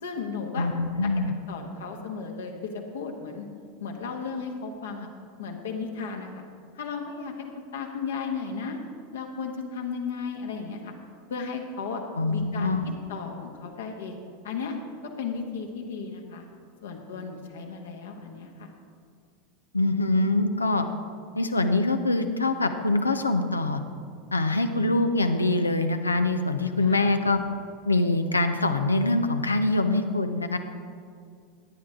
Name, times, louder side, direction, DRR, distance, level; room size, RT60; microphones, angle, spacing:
voice 1, 0.0-0.7 1.0-1.1 1.5-3.5 3.8-5.1 5.4-6.4 6.7-7.5 7.7-8.8 9.1-10.9 11.3-12.0 12.3-14.1 14.4-14.8 15.0-16.5 16.8-18.7 26.8-27.1, left 5 dB, 65° left, 3 dB, 1.4 m, -35 dB
voice 2, 0.6-1.3 12.2-12.9 19.7-20.9 21.3-23.8 24.3-27.4 27.8-30.6, left 2 dB, 80° left, 8 dB, 0.7 m, -24 dB
14.5 x 9.8 x 3.7 m, 2.2 s
figure-of-eight pair, 85°, 0 cm